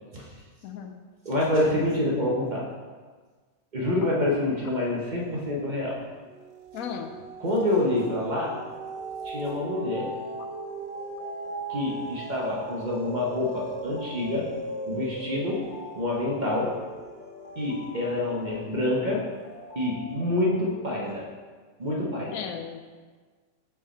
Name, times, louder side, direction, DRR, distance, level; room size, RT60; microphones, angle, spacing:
voice 1, 0.6-1.0 6.7-7.1 22.3-22.8, left 7 dB, 80° left, 6 dB, 1.0 m, -35 dB
voice 2, 1.2-2.7 3.7-6.0 7.4-8.6 9.2-10.1 11.7-14.5 14.8-15.6 15.9-16.7 17.6-19.2 19.7-21.2 21.8-22.4, left 1 dB, 35° right, -4 dB, 1.0 m, -27 dB
sound 1, 5.2-5.7 6.1-18.6 19.1-19.2, right 3 dB, 65° right, 0.6 m, -39 dB
sound 2, 8.7-21.3, left 2 dB, 45° left, 0.7 m, -45 dB
5.6 x 4.7 x 4.3 m, 1.5 s
omnidirectional pair, 1.5 m